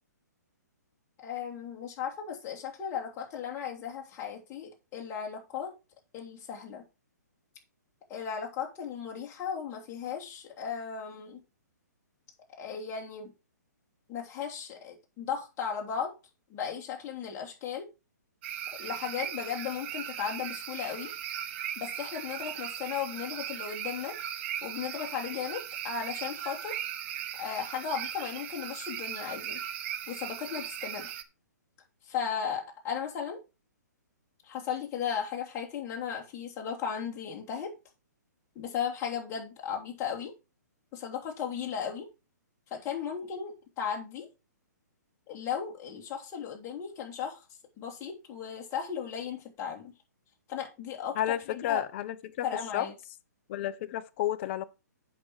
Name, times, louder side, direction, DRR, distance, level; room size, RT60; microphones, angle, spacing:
voice 1, 1.2-5.7 6.1-6.8 8.1-11.4 12.6-13.3 14.1-16.1 16.5-17.9 18.8-21.1 21.8-24.2 24.6-26.8 27.4-29.6 30.1-31.1 32.0-33.4 34.4-37.7 38.5-40.3 40.9-42.1 42.7-44.3 45.3-47.4 47.8-49.9 50.5-51.2 51.5-51.8 52.4-52.9, left 7 dB, 25° left, 2.8 m, -36 dB
sound 1, 18.4-31.2, right 10 dB, 40° right, 0.9 m, -38 dB
voice 2, 51.2-52.4 52.7-52.9 53.5-54.6, left 12 dB, 40° left, 0.8 m, -31 dB
8.2 x 6.1 x 4.9 m
hypercardioid pair, 135°, 10 cm